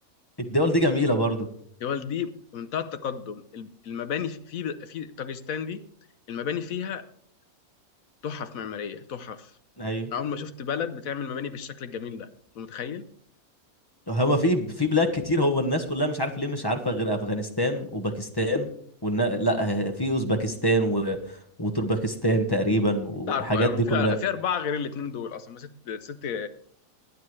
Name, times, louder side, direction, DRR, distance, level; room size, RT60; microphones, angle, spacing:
voice 1, 0.4-1.5 9.8-10.1 14.1-18.7 19.0-21.2 21.6-24.2, equal, 15° left, 5 dB, 1.2 m, -25 dB
voice 2, 1.8-5.8 6.3-7.0 8.2-9.5 10.1-12.3 12.6-13.0 23.3-26.5, left 7 dB, 70° left, 11 dB, 1.3 m, -32 dB
21.0 x 9.4 x 3.2 m, 0.62 s
omnidirectional pair, 1.5 m